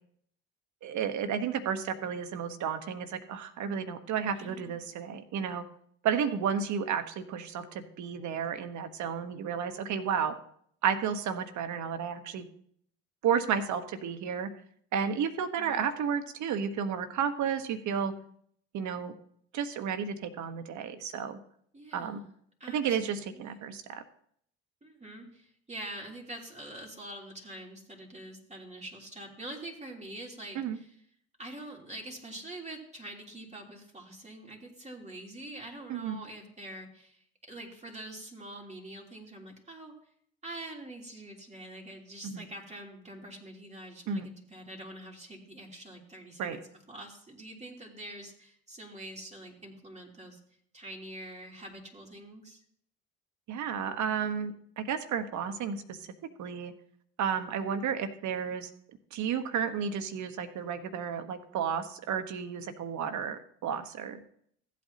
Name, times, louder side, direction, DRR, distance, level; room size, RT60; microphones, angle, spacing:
voice 1, 0.8-5.6 6.0-10.4 10.8-12.5 13.2-14.5 14.9-18.1 18.7-19.1 19.5-21.4 21.9-22.2 22.7-24.0 30.5-30.8 35.9-36.2 42.2-42.4 44.1-44.3 46.4-46.6 53.5-56.1 56.4-56.7 57.2-58.7 59.1-64.2, right 7 dB, 60° right, 9 dB, 1.2 m, -32 dB
voice 2, 4.3-4.8 15.6-15.9 21.7-22.3 22.6-23.6 24.8-30.9 31.4-39.9 40.4-50.4 50.7-52.6, right 1 dB, 20° right, -1 dB, 3.2 m, -45 dB
15.0 x 8.4 x 2.9 m, 0.64 s
hypercardioid pair, 60°, 32 cm